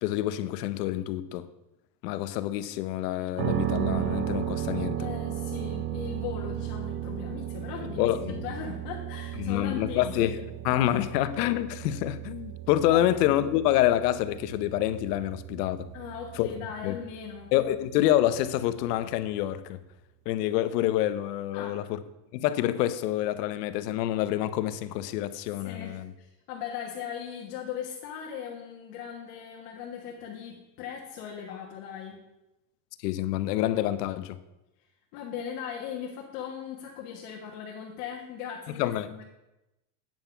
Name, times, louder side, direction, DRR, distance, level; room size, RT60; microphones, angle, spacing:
voice 1, 0.0-1.5 2.0-5.1 7.8-8.5 9.4-10.3 10.6-15.9 16.4-17.0 17.5-19.8 20.3-22.0 22.3-26.1 33.0-34.4 38.8-39.1, left 13 dB, 70° left, 0.8 m, -27 dB
sound 1, 3.4-19.2, right 12 dB, 25° right, 0.4 m, -35 dB
voice 2, 5.0-10.4 12.9-13.1 15.9-17.5 21.5-21.8 25.6-32.2 35.1-39.2, left 8 dB, 55° left, 1.5 m, -38 dB
9.0 x 5.7 x 5.8 m
supercardioid pair, 155°, 49 cm